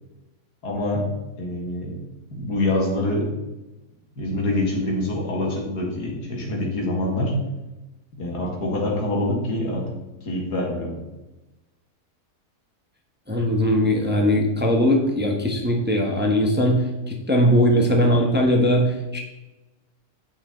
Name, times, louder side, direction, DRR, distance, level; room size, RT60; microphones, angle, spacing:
voice 1, 0.6-1.1 1.4-2.0 2.3-3.3 4.2-7.4 8.1-10.0 10.2-11.0, left 1 dB, 90° left, -1 dB, 2.5 m, -25 dB
voice 2, 13.3-19.2, equal, 10° right, 1 dB, 0.9 m, -20 dB
8.6 x 5.6 x 4.4 m, 1.0 s
omnidirectional pair, 1.7 m